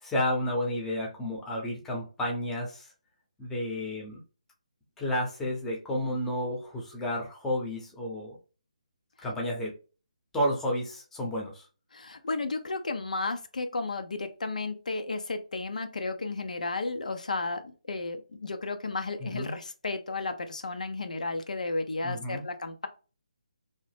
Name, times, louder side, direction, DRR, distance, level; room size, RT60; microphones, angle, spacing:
voice 1, 0.0-2.9 3.4-4.2 5.0-8.4 9.2-9.7 10.3-11.7 19.2-19.5 22.0-22.4, left 1 dB, 5° left, -2 dB, 0.6 m, -31 dB
voice 2, 11.9-22.9, left 3 dB, 75° left, 7 dB, 0.5 m, -33 dB
2.7 x 2.0 x 3.3 m, 0.34 s
figure-of-eight pair, 155°, 4 cm